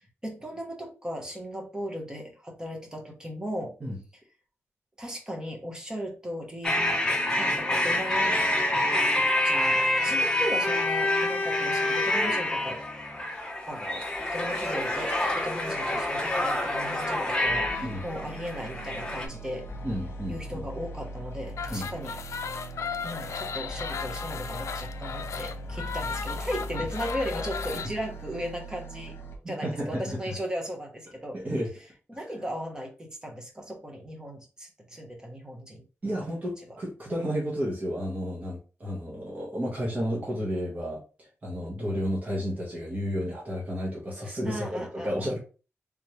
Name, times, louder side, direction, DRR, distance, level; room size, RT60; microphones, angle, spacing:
voice 1, 0.2-3.8 5.0-6.8 7.4-8.4 9.1-9.2 9.4-12.8 13.7-19.7 20.3-22.2 23.0-29.1 29.5-31.4 32.1-35.8 44.2-45.3, equal, 15° right, 1 dB, 0.9 m, -37 dB
sound 1, 6.6-19.3, left 1 dB, 15° left, 0.8 m, -27 dB
sound 2, 17.4-29.4, right 1 dB, 55° left, 1.1 m, -40 dB
voice 2, 19.8-20.6 21.7-21.9 26.7-26.8 29.4-30.3 31.3-31.7 36.0-45.4, equal, 30° right, -4 dB, 1.2 m, -32 dB
sound 3, 21.5-27.9, left 6 dB, 85° left, 0.3 m, -36 dB
3.5 x 3.2 x 3.0 m, 0.35 s
wide cardioid pair, 145°, 5 cm